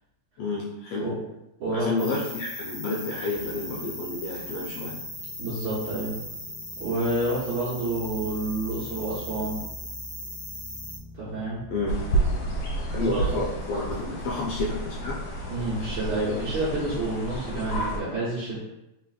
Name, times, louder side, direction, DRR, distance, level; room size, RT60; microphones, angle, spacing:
voice 1, 0.4-1.1 1.7-5.0 11.7-12.0 12.9-15.2, left 2 dB, 75° left, -3 dB, 1.5 m, -30 dB
voice 2, 1.6-2.1 5.4-6.2 6.8-9.6 11.2-11.6 12.9-13.4 15.5-18.6, right 2 dB, 55° right, -9 dB, 1.5 m, -29 dB
sound 1, 2.0-11.0, left 1 dB, 45° left, 1.0 m, -38 dB
sound 2, 3.3-16.0, equal, 75° right, 1.4 m, -46 dB
sound 3, 11.9-18.0, right 2 dB, 60° left, 1.6 m, -30 dB
4.1 x 3.9 x 2.4 m, 0.92 s
omnidirectional pair, 3.3 m